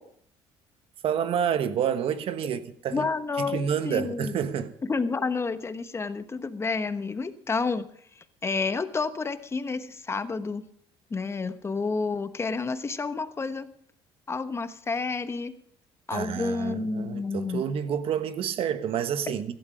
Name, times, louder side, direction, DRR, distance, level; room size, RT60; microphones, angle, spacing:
voice 1, 1.0-3.1 3.4-4.7 16.1-19.5, right 8 dB, 60° right, 1.3 m, -29 dB
voice 2, 2.9-4.4 4.8-7.9 8.2-10.6 11.1-13.7 14.3-15.5 16.1-17.6 19.3-19.4, left 4 dB, 25° left, 1.1 m, -30 dB
16.0 x 12.0 x 5.0 m
cardioid pair, 105°, 11 cm